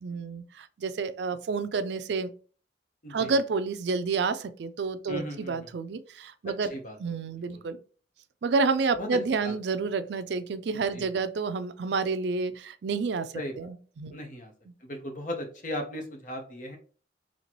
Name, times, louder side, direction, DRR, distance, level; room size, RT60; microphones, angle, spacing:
voice 1, 0.0-2.3 3.1-6.7 7.0-7.8 8.4-14.2, right 4 dB, 70° right, 0.4 m, -29 dB
voice 2, 3.0-3.3 5.1-5.7 6.7-7.0 7.5-7.6 9.0-9.1 9.4-9.5 10.9-11.1 13.3-13.7 14.1-14.5 14.8-16.8, equal, 45° left, 0.9 m, -37 dB
4.2 x 3.0 x 2.9 m
head